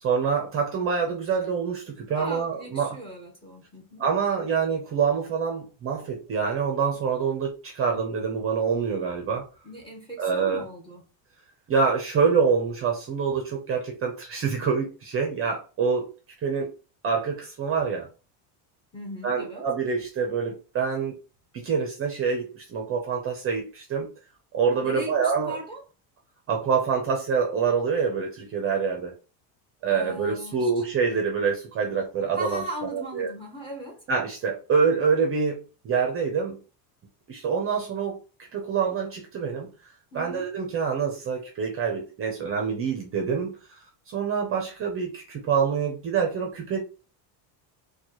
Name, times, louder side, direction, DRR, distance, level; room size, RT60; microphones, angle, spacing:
voice 1, 0.0-2.9 4.0-9.4 10.2-10.6 11.7-16.1 16.4-16.7 17.0-18.1 19.2-21.2 21.5-24.1 24.5-25.6 26.5-29.1 29.8-32.6 33.1-33.3 34.1-36.6 37.3-38.2 38.5-39.7 40.1-43.5 44.1-46.8, right 6 dB, 30° right, 0.6 m, -26 dB
voice 2, 2.2-4.1 9.6-11.0 18.9-19.7 24.8-25.8 29.8-30.8 32.3-34.1 40.1-40.5, right 1 dB, 10° left, 0.8 m, -38 dB
4.3 x 2.3 x 2.9 m
cardioid pair, 155°, 49 cm